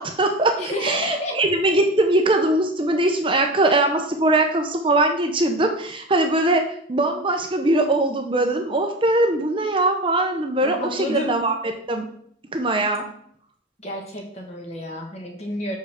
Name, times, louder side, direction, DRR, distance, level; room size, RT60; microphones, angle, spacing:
voice 1, 0.0-12.1 12.5-13.0, right 2 dB, 30° right, 4 dB, 0.7 m, -21 dB
voice 2, 0.6-1.3 10.6-11.4 13.8-15.8, left 1 dB, 35° left, 1 dB, 1.6 m, -30 dB
6.1 x 5.3 x 5.1 m, 0.63 s
head